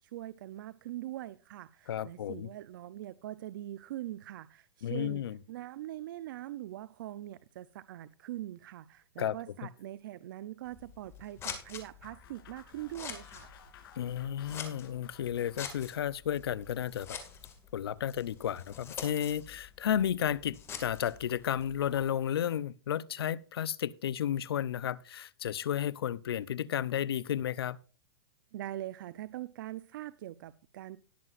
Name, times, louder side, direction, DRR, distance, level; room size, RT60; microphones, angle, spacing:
voice 1, 0.0-5.2 5.5-13.5 28.5-31.0, right 14 dB, 55° right, 0.6 m, -42 dB
voice 2, 1.9-2.5 4.8-5.4 9.2-9.4 14.0-17.2 17.7-27.8, left 10 dB, 80° left, 0.7 m, -33 dB
Scissors, 10.6-22.1, left 7 dB, 20° left, 2.2 m, -47 dB
sound 1, 12.0-17.2, left 8 dB, 65° left, 3.2 m, -57 dB
19.0 x 7.6 x 2.5 m
hypercardioid pair, 150°, 13 cm